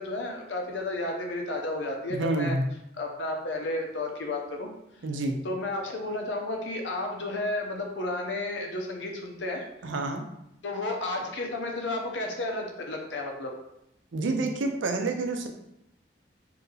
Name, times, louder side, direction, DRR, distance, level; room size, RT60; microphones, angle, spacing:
voice 1, 0.0-2.6 2.9-4.7 5.4-9.6 10.6-13.5, left 2 dB, 75° left, 1 dB, 0.6 m, -32 dB
voice 2, 2.1-2.6 5.0-5.4 9.8-10.2 14.1-15.5, right 2 dB, 85° right, 4 dB, 0.5 m, -28 dB
2.8 x 2.7 x 3.8 m, 0.82 s
head